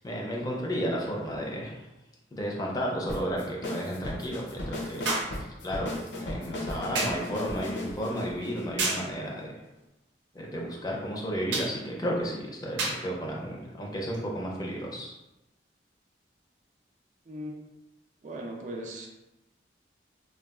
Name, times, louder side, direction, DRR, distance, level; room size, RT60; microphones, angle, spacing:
voice 1, 0.0-1.7 2.3-5.1 5.3-9.5 10.3-15.2, equal, 20° left, -2 dB, 0.5 m, -33 dB
sound 1, 1.3-1.4 5.1-5.4 7.0-7.3 8.8-9.1 11.5-11.8 12.8-13.1 14.1-14.3, right 2 dB, 80° right, 0.6 m, -30 dB
sound 2, 3.1-9.4, left 2 dB, 70° left, 0.6 m, -37 dB
voice 2, 18.2-19.1, right 1 dB, 40° right, 0 dB, 0.4 m, -38 dB
3.7 x 2.3 x 2.3 m, 0.97 s
head